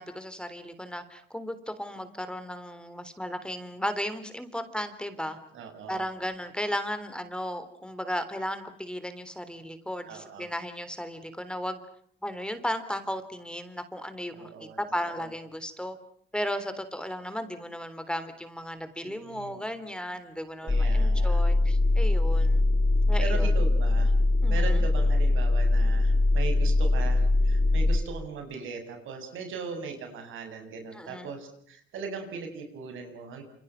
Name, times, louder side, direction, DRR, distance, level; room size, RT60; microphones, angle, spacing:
voice 1, 0.0-5.4 5.9-11.8 12.2-16.0 16.3-22.7 23.1-23.5 24.4-24.8 31.0-31.3, equal, 5° left, 11 dB, 3.6 m, -35 dB
voice 2, 5.5-6.1 10.1-10.5 14.3-14.8 15.2-15.3 19.0-19.6 20.6-21.4 23.2-24.1 24.5-33.4, right 5 dB, 80° right, 6 dB, 7.2 m, -39 dB
sound 1, 20.7-28.0, left 2 dB, 20° left, 3.8 m, -22 dB
28.5 x 28.0 x 6.0 m, 0.64 s
cardioid pair, 90°, 20 cm